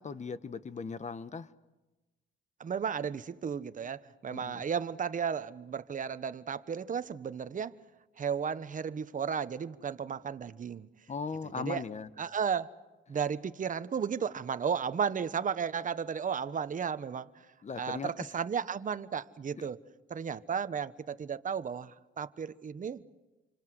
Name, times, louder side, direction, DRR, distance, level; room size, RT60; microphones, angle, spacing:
voice 1, 0.0-1.5 4.3-4.6 11.1-12.1 17.6-18.3 19.6-19.7, left 5 dB, 35° left, 1.3 m, -38 dB
voice 2, 2.6-7.7 8.2-10.9 11.6-11.8 12.2-12.7 13.1-17.3 17.8-19.8 20.1-23.0, right 7 dB, 40° right, 1.1 m, -34 dB
29.0 x 25.0 x 7.9 m
cardioid pair, 90°, 20 cm